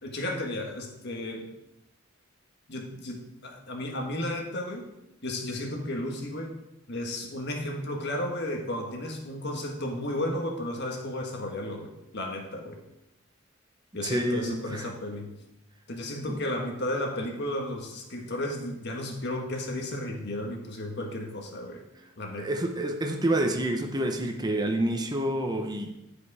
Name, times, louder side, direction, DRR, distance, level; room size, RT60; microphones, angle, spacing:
voice 1, 0.0-1.5 2.7-4.9 5.2-6.5 6.9-12.8 13.9-15.3 15.9-21.8 22.2-22.5, left 1 dB, 55° left, 2 dB, 1.5 m, -33 dB
voice 2, 14.0-14.9 16.3-16.4 22.4-25.9, right 1 dB, 20° right, 4 dB, 0.8 m, -28 dB
11.0 x 5.1 x 4.8 m, 0.90 s
head